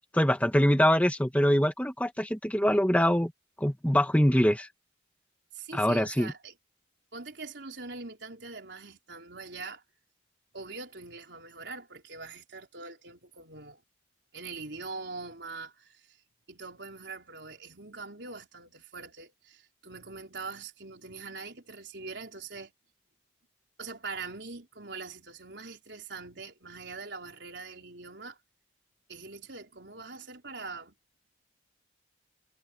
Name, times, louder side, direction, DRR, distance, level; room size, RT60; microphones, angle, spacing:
voice 1, 0.1-3.3 3.6-4.7 5.7-6.3, equal, 5° left, 1.6 m, -24 dB
voice 2, 5.5-6.6 7.1-9.8 10.5-13.8 14.3-16.2 16.5-22.7 23.8-28.4 29.1-30.9, right 4 dB, 60° right, 4.3 m, -43 dB
head